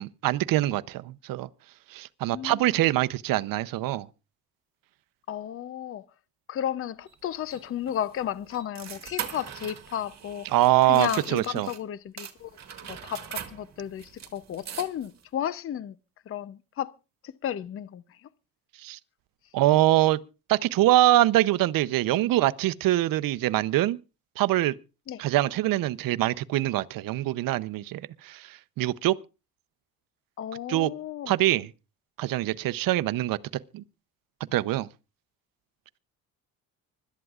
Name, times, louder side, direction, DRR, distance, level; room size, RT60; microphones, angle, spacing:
voice 1, 0.0-1.5 1.9-4.1 10.4-11.7 18.8-19.0 19.5-20.2 20.5-24.0 24.4-24.7 25.2-29.2 30.7-30.9 31.3-31.7 32.2-33.4 33.7-33.8 34.5-34.9, right 15 dB, 65° right, 0.7 m, -24 dB
voice 2, 5.3-6.0 6.5-10.5 10.9-12.5 12.8-16.0 16.3-16.9 17.4-18.0 25.1-25.2 30.4-31.3, left 10 dB, 35° left, 0.6 m, -33 dB
sound 1, 7.1-11.8 12.2-15.2, right 9 dB, 45° right, 1.9 m, -41 dB
25.0 x 12.5 x 2.4 m
cardioid pair, 110°, 36 cm